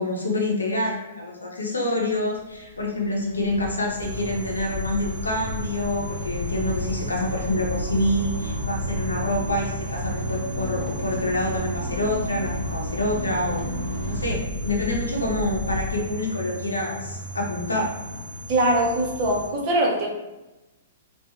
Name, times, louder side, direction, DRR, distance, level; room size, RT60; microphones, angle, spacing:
voice 1, 0.0-13.6 14.1-17.9, left 1 dB, 90° left, -1 dB, 0.6 m, -27 dB
sound 1, 2.2-14.4, equal, 75° right, 0.9 m, -33 dB
Livestock farm animals working animals, 3.4-15.9, left 1 dB, 20° left, 0.6 m, -36 dB
sound 2, 4.0-19.5, right 1 dB, 55° left, 1.1 m, -38 dB
voice 2, 18.5-20.1, right 1 dB, 45° right, -2 dB, 0.6 m, -22 dB
2.7 x 2.3 x 2.4 m, 1.0 s
hypercardioid pair, 115°, 0 cm